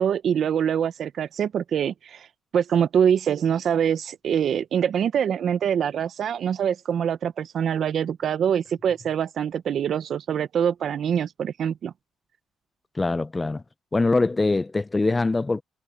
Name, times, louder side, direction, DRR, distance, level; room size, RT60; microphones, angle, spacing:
voice 1, 0.0-2.3 2.5-11.9, right 8 dB, 60° right, 0.7 m, -24 dB
voice 2, 13.0-13.6 13.9-15.6, left 3 dB, 20° left, 0.4 m, -23 dB
cardioid pair, 90°, 0 cm